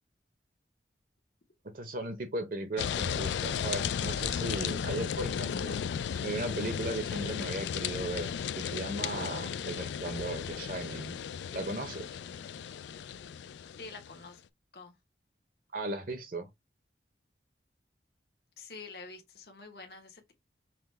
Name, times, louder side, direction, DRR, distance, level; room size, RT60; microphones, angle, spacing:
voice 1, 1.7-5.8 6.2-11.2 11.5-12.1 15.7-16.5, right 2 dB, 50° right, 0.7 m, -37 dB
sound 1, 2.8-14.2, left 8 dB, 80° left, 0.3 m, -35 dB
voice 2, 13.8-14.4 14.7-14.9 18.6-20.3, left 4 dB, 60° left, 1.0 m, -47 dB
5.7 x 2.2 x 3.2 m
head